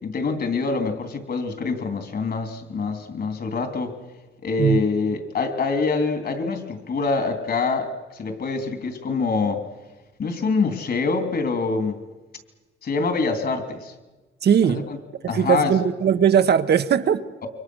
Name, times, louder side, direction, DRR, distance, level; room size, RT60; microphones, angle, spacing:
voice 1, 0.0-3.9 4.4-9.6 10.2-12.0 12.8-13.9 14.6-15.0 15.3-15.7, left 4 dB, 50° left, 3.3 m, -25 dB
voice 2, 14.4-14.8 15.2-17.5, right 8 dB, 55° right, 1.1 m, -19 dB
28.5 x 24.0 x 6.3 m
cardioid pair, 90°, 20 cm